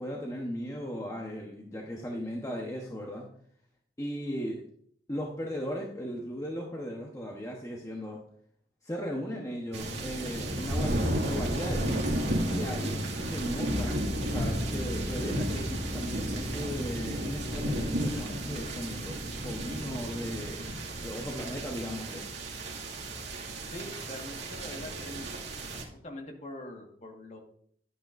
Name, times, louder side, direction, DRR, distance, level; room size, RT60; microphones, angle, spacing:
voice 1, 0.0-3.3 4.0-4.6 5.1-8.2 8.8-12.0 12.5-22.2, equal, 20° left, -1 dB, 1.0 m, -37 dB
sound 1, 9.7-25.8, right 1 dB, 80° right, 2.0 m, -33 dB
sound 2, 13.6-23.7, left 1 dB, 15° right, 3.6 m, -41 dB
voice 2, 23.7-25.4 26.0-27.4, left 1 dB, 40° left, 2 dB, 1.6 m, -43 dB
11.0 x 9.1 x 2.6 m, 0.63 s
head